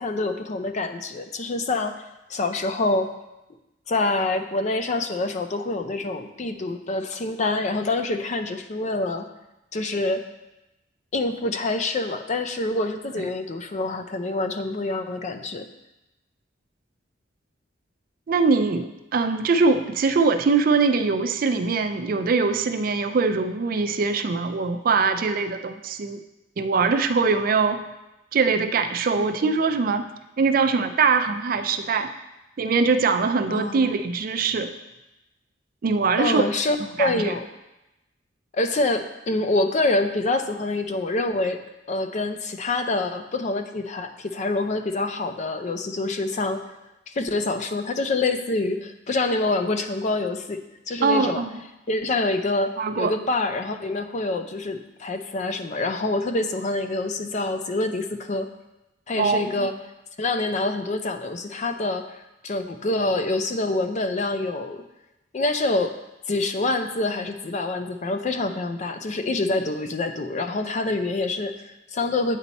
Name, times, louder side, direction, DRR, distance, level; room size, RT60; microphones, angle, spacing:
voice 1, 0.0-2.0 2.3-3.1 3.9-9.3 9.7-10.3 11.1-15.7 29.2-29.5 33.5-33.9 36.2-37.5 38.5-41.6 41.9-46.6 47.1-50.6 50.9-51.4 51.9-58.5 59.1-59.7 60.2-62.1 62.4-64.8 65.3-65.9 66.3-72.4, left 2 dB, 40° left, 8 dB, 0.4 m, -26 dB
voice 2, 18.3-26.2 26.6-27.8 28.3-30.1 30.4-32.1 32.6-34.7 35.8-36.4 37.0-37.3 51.0-51.6 52.8-53.1 59.2-59.7, right 4 dB, 50° right, 8 dB, 0.4 m, -22 dB
8.3 x 4.3 x 4.0 m, 0.95 s
head